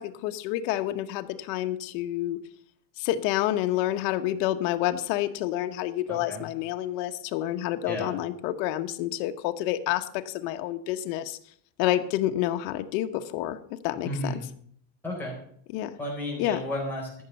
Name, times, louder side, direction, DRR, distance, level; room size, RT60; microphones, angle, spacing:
voice 1, 0.0-2.4 3.0-11.4 11.8-14.3 15.7-16.0 16.4-16.6, left 13 dB, 75° left, 7 dB, 1.1 m, -29 dB
voice 2, 6.1-6.4 7.8-8.1 14.0-14.4 15.0-15.4 16.0-17.2, left 1 dB, 5° left, -5 dB, 4.2 m, -33 dB
13.5 x 6.5 x 6.9 m, 0.64 s
cardioid pair, 160°, 50 cm